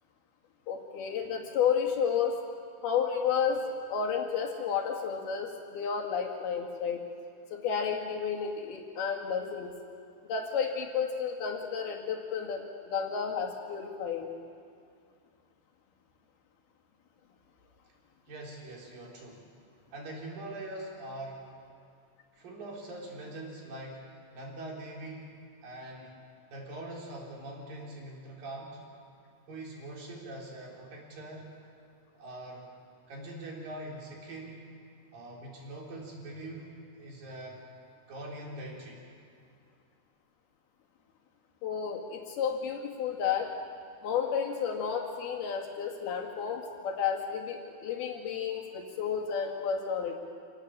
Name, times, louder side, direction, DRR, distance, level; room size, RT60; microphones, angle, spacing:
voice 1, 0.7-2.4 2.8-7.0 7.5-9.7 10.3-14.3 41.6-43.5 44.0-50.2, left 7 dB, 85° left, 1 dB, 4.2 m, -31 dB
voice 2, 18.3-19.5 19.9-21.5 22.3-25.4 25.6-26.2 26.5-28.8 29.5-31.5 32.2-32.7 33.1-34.6 35.1-37.6 38.1-39.0, right 1 dB, 65° right, -2 dB, 5.4 m, -43 dB
27.5 x 18.0 x 7.7 m, 2.2 s
omnidirectional pair, 4.4 m